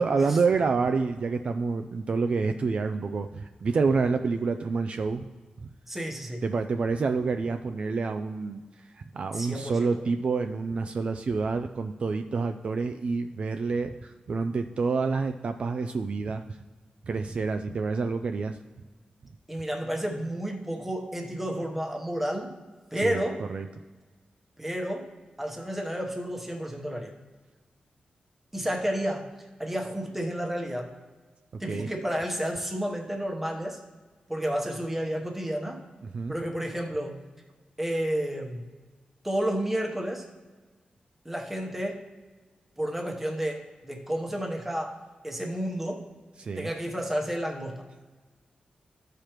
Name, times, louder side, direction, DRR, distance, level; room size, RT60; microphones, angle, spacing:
voice 1, 0.0-5.3 6.4-8.9 9.1-16.4 17.1-18.6 23.0-23.2 23.5-23.7 31.7-31.9 36.1-36.3 46.4-46.7, right 4 dB, 45° right, 7 dB, 0.3 m, -28 dB
voice 2, 5.9-6.4 9.3-10.0 19.5-22.6 22.9-23.5 24.6-25.1 25.4-27.1 28.5-29.3 29.6-30.9 31.6-33.8 34.3-35.8 36.3-37.3 37.8-38.7 39.2-40.3 41.2-42.1 42.8-45.0 45.2-46.1 46.5-47.9, equal, 10° right, 2 dB, 0.9 m, -31 dB
14.5 x 4.9 x 3.0 m, 1.4 s
wide cardioid pair, 170°, 3 cm